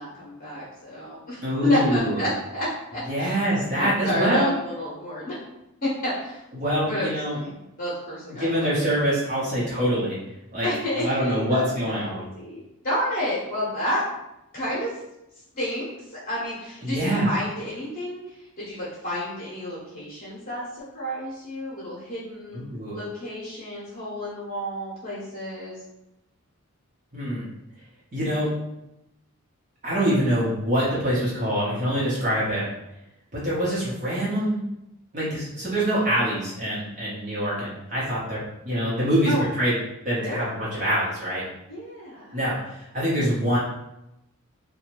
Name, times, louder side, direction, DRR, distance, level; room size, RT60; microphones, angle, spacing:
voice 1, 0.0-2.7 2.9-3.4 3.7-5.4 5.8-6.4 6.9-8.7 10.6-14.0 14.5-14.9 15.5-18.2 18.6-22.6 22.9-25.8 39.2-39.4 40.2-40.4 41.7-42.3, left 1 dB, 40° left, -7 dB, 0.9 m, -30 dB
voice 2, 1.4-2.2 3.1-4.5 6.5-7.4 8.4-10.2 10.5-10.7 11.0-12.3 16.8-17.4 22.5-23.0 27.1-27.4 28.1-28.5 29.8-32.7 33.3-34.6 35.1-38.4 38.6-39.7 40.0-41.4 42.3-43.6, equal, 35° right, -8 dB, 0.9 m, -25 dB
2.8 x 2.3 x 3.0 m, 0.86 s
head